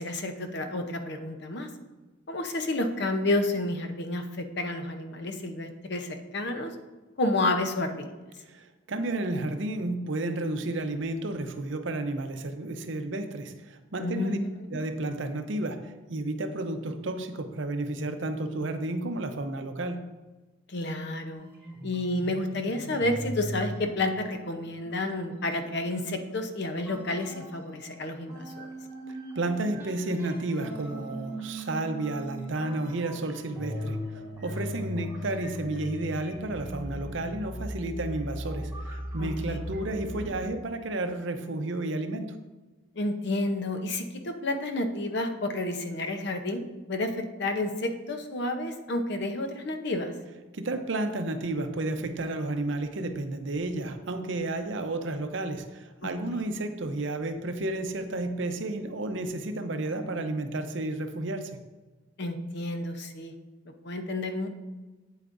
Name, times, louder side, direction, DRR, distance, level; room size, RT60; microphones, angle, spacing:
voice 1, 0.0-1.7 2.3-6.7 7.2-8.1 14.0-14.8 20.7-21.5 21.8-28.7 39.2-39.6 43.0-50.1 62.2-63.3 63.8-64.5, left 2 dB, 55° left, 6 dB, 0.8 m, -30 dB
voice 2, 8.4-14.4 14.7-20.0 29.1-42.4 50.5-61.6, right 2 dB, 65° right, 8 dB, 0.7 m, -32 dB
sound 1, 21.3-28.0 28.3-40.3, equal, 10° right, 2.8 m, -39 dB
8.6 x 8.1 x 2.6 m, 1.2 s
head